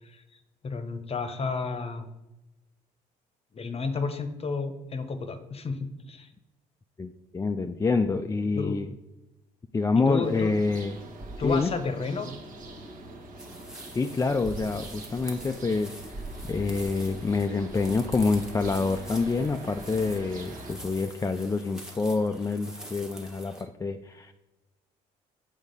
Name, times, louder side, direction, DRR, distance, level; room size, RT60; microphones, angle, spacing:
voice 1, 0.6-2.1 3.5-6.3 8.5-8.8 10.0-10.5 11.4-12.3, left 4 dB, 35° left, 9 dB, 0.9 m, -31 dB
voice 2, 7.0-8.9 9.7-11.0 11.4-11.7 13.9-16.0 16.4-24.3, left 4 dB, 20° left, 6 dB, 0.4 m, -27 dB
sound 1, 10.2-20.7, right 2 dB, 50° right, 1.3 m, -42 dB
sound 2, 13.4-23.6, equal, 5° right, 1.1 m, -46 dB
6.5 x 3.5 x 5.3 m, 0.99 s
cardioid pair, 80°, 17 cm